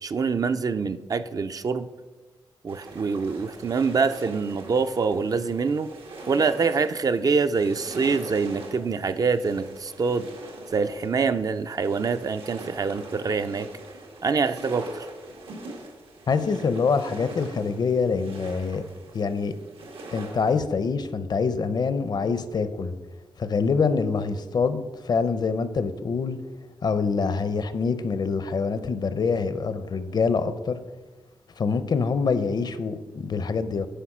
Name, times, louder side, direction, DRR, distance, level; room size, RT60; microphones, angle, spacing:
voice 1, 0.0-1.9 2.6-5.9 6.3-10.3 10.7-13.7 14.2-15.1, right 5 dB, 40° right, 10 dB, 0.4 m, -25 dB
sound 1, 2.7-20.6, right 2 dB, 90° right, 1.7 m, -42 dB
voice 2, 16.3-18.8 19.1-19.5 20.1-22.9 23.4-26.4 26.8-30.8 31.6-33.9, left 5 dB, 50° left, 12 dB, 0.6 m, -25 dB
10.0 x 4.9 x 6.0 m, 1.2 s
wide cardioid pair, 130°, 9 cm